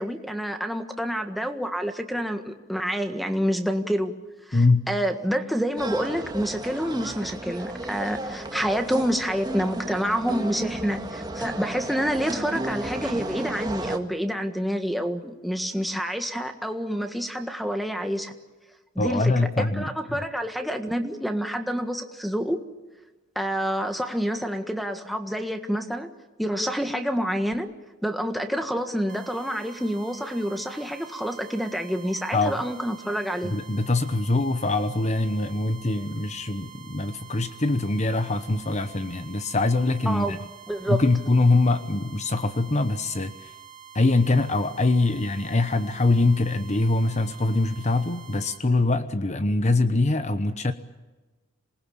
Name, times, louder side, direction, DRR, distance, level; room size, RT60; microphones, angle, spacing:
voice 1, 0.0-4.1 4.5-18.3 18.9-22.6 23.3-26.1 26.4-27.7 28.0-33.5 40.0-40.4 40.7-41.0, equal, ahead, 7 dB, 1.6 m, -28 dB
voice 2, 4.5-4.9 19.0-19.9 32.3-32.5 33.4-40.4 40.9-43.3 43.9-50.7, left 2 dB, 35° left, 10 dB, 1.0 m, -23 dB
sound 1, 5.8-14.0, right 1 dB, 20° right, 1.8 m, -33 dB
sound 2, 29.1-48.6, right 8 dB, 40° right, 2.7 m, -47 dB
27.0 x 20.0 x 8.8 m, 1.2 s
head